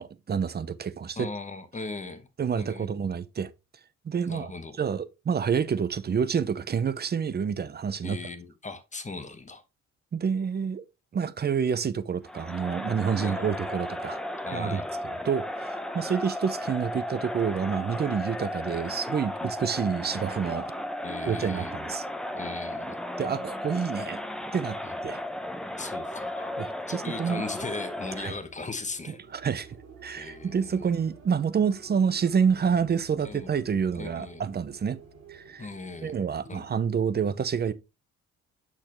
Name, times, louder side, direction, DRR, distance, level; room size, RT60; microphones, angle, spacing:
voice 1, 0.0-1.3 2.4-3.5 4.0-4.5 4.8-8.2 10.1-10.8 11.1-14.2 14.5-14.8 15.2-20.7 21.3-22.0 23.2-24.2 24.5-24.8 25.0-25.2 26.6-27.4 28.2-28.3 29.3-29.7 30.0-35.0 35.3-35.7 36.0-37.7, right 6 dB, 35° right, 0.6 m, -28 dB
voice 2, 1.1-2.3 2.6-2.9 4.3-4.8 8.0-9.6 13.2-13.4 14.4-15.0 21.0-21.7 22.3-23.0 24.8-24.9 25.8-26.6 26.9-29.2 30.1-30.9 33.2-33.6 33.9-34.4 35.6-36.2 36.5-36.8, left 3 dB, 25° left, 1.1 m, -38 dB
Crowd, 12.3-28.4, left 1 dB, ahead, 0.8 m, -35 dB
sound 1, 27.7-37.0, right 5 dB, 60° right, 2.6 m, -52 dB
6.5 x 6.1 x 3.1 m
cardioid pair, 90°, 30 cm